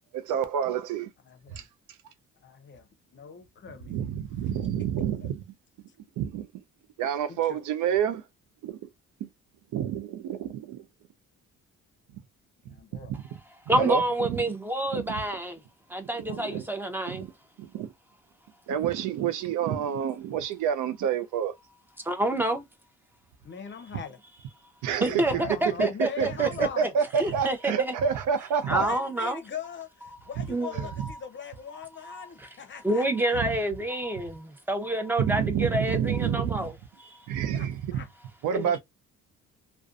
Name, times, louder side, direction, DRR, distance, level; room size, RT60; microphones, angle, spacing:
voice 1, 0.1-1.1 1.5-1.6 3.9-5.4 6.2-6.5 7.0-8.2 8.6-8.8 9.2-9.3 9.7-10.8 12.7-12.8 13.1-13.2 13.7-14.4 14.9-15.2 16.2-16.6 17.1-17.3 17.6-17.9 18.7-21.5 24.8-28.8 30.4-30.5 30.8-31.1 35.2-36.7 37.3-38.0 38.4-38.8, right 8 dB, 85° right, 0.5 m, -28 dB
voice 2, 1.3-1.7 2.4-2.8 3.1-4.0 4.6-4.7 7.3-7.6 12.7-13.2 16.3-16.7 23.4-24.2 25.1-26.9 28.7-33.0 34.8-35.0 37.5-38.1, left 7 dB, 40° left, 0.7 m, -41 dB
voice 3, 13.7-15.6 15.9-17.3 22.0-22.7 25.0-26.9 27.2-27.9 28.6-29.4 30.5-31.2 32.0-32.5 32.8-36.7 37.0-37.3 38.5-38.8, right 1 dB, 5° right, 0.7 m, -28 dB
2.4 x 2.2 x 2.4 m
cardioid pair, 90°, 30 cm